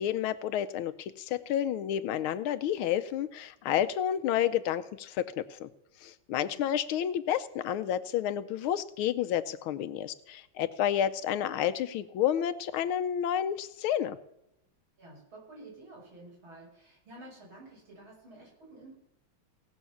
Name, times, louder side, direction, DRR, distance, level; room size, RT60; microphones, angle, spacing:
voice 1, 0.0-5.7 6.0-14.2, left 10 dB, 80° left, 12 dB, 1.5 m, -30 dB
voice 2, 15.0-18.9, right 2 dB, 70° right, -5 dB, 7.1 m, -51 dB
17.5 x 6.3 x 7.0 m, 0.82 s
omnidirectional pair, 2.3 m